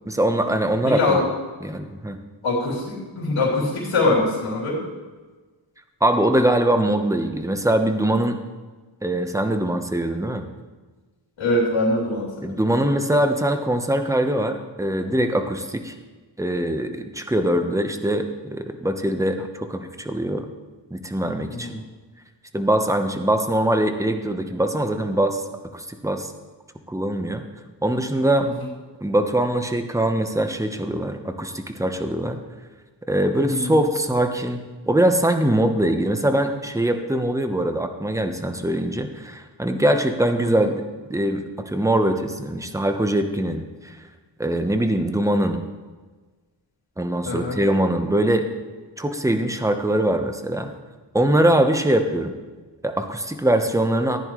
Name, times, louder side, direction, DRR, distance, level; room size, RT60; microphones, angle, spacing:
voice 1, 0.1-1.2 1.6-2.2 6.0-8.4 9.0-10.5 12.4-15.9 16.4-20.5 20.9-21.8 22.5-25.4 25.7-26.3 26.9-27.4 27.8-28.5 29.0-32.4 33.1-40.8 41.1-44.0 44.4-45.6 47.0-48.5 49.0-50.7 51.1-52.3 52.8-54.2, right 1 dB, 5° right, 6 dB, 1.0 m, -22 dB
voice 2, 0.8-1.2 2.4-4.8 11.4-12.6 21.5-21.8 33.5-33.7 40.6-40.7 47.3-47.6, left 2 dB, 80° left, -5 dB, 3.5 m, -23 dB
15.0 x 10.5 x 3.2 m, 1.3 s
cardioid pair, 70°, 46 cm